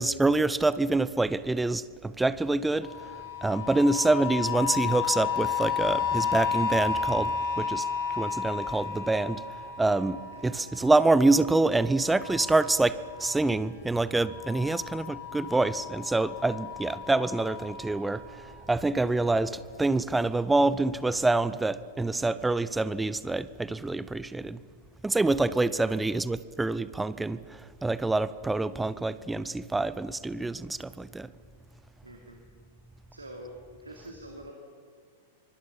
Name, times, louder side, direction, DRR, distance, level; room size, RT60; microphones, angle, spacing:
voice 1, 0.0-2.9 3.4-7.9 8.2-9.4 9.8-18.2 18.7-24.6 25.0-27.4 27.8-31.3, right 2 dB, 10° right, 17 dB, 0.7 m, -26 dB
sound 1, 2.8-13.8 14.2-18.8 19.5-19.6, left 6 dB, 50° left, 5.3 m, -33 dB
voice 2, 10.3-10.6 25.6-25.9 32.0-32.4 33.1-34.5, right 1 dB, 80° right, 2 dB, 2.9 m, -46 dB
25.5 x 24.5 x 5.6 m, 2.2 s
figure-of-eight pair, 95°, 0 cm